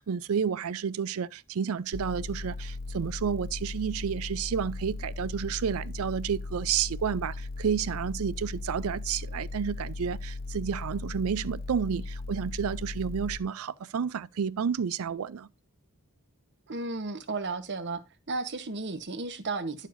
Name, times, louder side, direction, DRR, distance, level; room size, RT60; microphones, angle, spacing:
voice 1, 0.0-15.5, right 7 dB, 70° right, 0.4 m, -31 dB
sound 1, 1.9-13.4, left 3 dB, 40° left, 1.1 m, -37 dB
voice 2, 16.7-18.0 18.3-19.9, right 3 dB, 55° right, 1.1 m, -33 dB
11.0 x 7.3 x 2.6 m
head